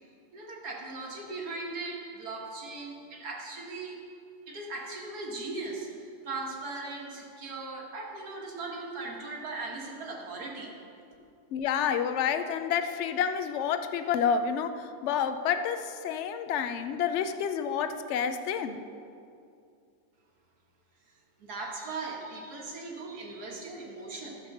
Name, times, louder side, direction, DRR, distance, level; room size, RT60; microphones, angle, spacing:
voice 1, 0.3-4.0 4.5-10.7 21.4-24.5, right 3 dB, 70° right, -1 dB, 2.0 m, -39 dB
voice 2, 11.5-18.8, left 7 dB, 70° left, 9 dB, 0.7 m, -29 dB
13.0 x 5.2 x 6.6 m, 2.5 s
omnidirectional pair, 1.7 m